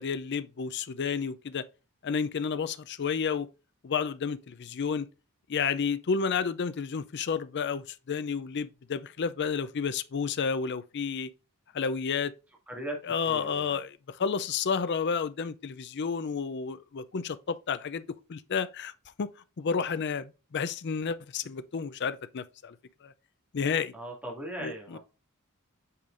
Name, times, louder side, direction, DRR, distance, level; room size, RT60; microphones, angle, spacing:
voice 1, 0.0-1.6 2.0-3.5 3.8-5.1 5.5-11.3 11.7-12.3 13.0-18.0 18.3-18.9 19.2-19.3 19.6-22.8 23.0-23.1 23.5-23.9 24.6-25.0, left 6 dB, 50° left, 0.5 m, -31 dB
voice 2, 13.2-13.8 23.9-25.0, right 1 dB, 5° right, 2.2 m, -38 dB
8.3 x 5.2 x 2.5 m
head